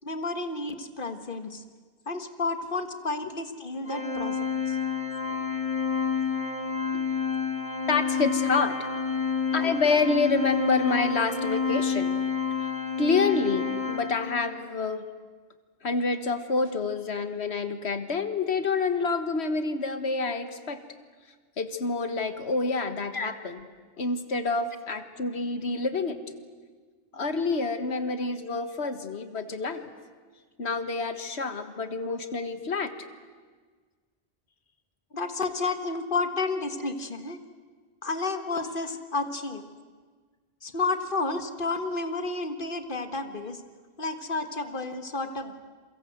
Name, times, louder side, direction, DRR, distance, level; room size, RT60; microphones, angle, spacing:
voice 1, 0.0-1.6 2.1-4.4 4.7-4.8 6.9-7.0 23.1-23.3 35.1-37.4 38.0-39.7 40.6-43.6 44.0-45.5, left 3 dB, 55° left, 8 dB, 1.8 m, -31 dB
Organ, 3.9-14.6, left 6 dB, 30° left, 1.8 m, -29 dB
voice 2, 7.9-8.8 9.5-12.2 13.0-15.1 15.8-20.8 21.6-23.7 24.0-26.2 27.1-29.9 30.6-32.9, left 3 dB, 85° left, 9 dB, 1.8 m, -28 dB
27.5 x 23.5 x 8.0 m, 1.5 s
omnidirectional pair, 1.1 m